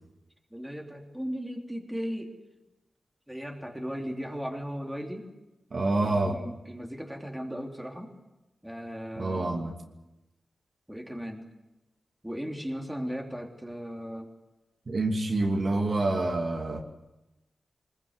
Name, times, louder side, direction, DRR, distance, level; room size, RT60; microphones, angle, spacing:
voice 1, 0.5-2.3 3.3-5.3 6.0-8.1 8.6-9.7 10.9-11.5 12.2-14.3, equal, 5° right, 1 dB, 3.3 m, -37 dB
voice 2, 5.7-6.4 9.2-9.7 14.9-16.8, right 2 dB, 50° right, 2 dB, 2.8 m, -27 dB
24.5 x 21.0 x 8.2 m, 0.98 s
wide cardioid pair, 125°, 0 cm